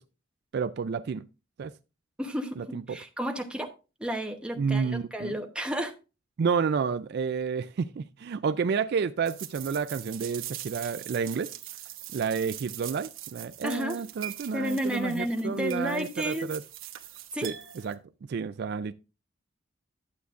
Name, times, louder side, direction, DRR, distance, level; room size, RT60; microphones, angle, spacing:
voice 1, 0.5-1.3 1.6-1.7 2.6-3.0 4.6-5.3 6.4-11.5 12.1-16.6 17.4-17.5 17.8-18.0 18.3-18.9, right 5 dB, 55° right, 0.3 m, -30 dB
voice 2, 2.2-3.7 4.0-5.9 13.6-14.0 14.5-16.5 17.3-17.5, equal, 5° right, 1.0 m, -32 dB
sound 1, 9.2-17.9, right 13 dB, 75° right, 1.0 m, -42 dB
11.5 x 8.2 x 2.5 m
head